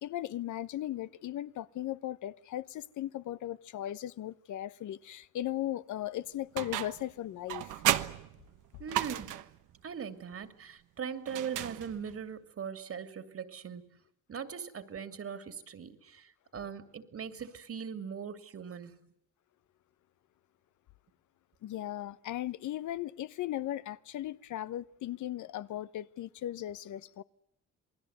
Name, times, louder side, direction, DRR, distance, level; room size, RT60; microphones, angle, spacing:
voice 1, 0.0-7.8 21.6-27.2, left 13 dB, 75° left, 1.0 m, -37 dB
sound 1, 6.6-7.1 7.5-9.6 11.3-12.2, right 13 dB, 90° right, 1.2 m, -33 dB
voice 2, 8.8-9.5 9.8-13.8 14.3-19.0, right 7 dB, 50° right, 2.6 m, -40 dB
27.5 x 20.0 x 8.0 m
cardioid pair, 90°, 30 cm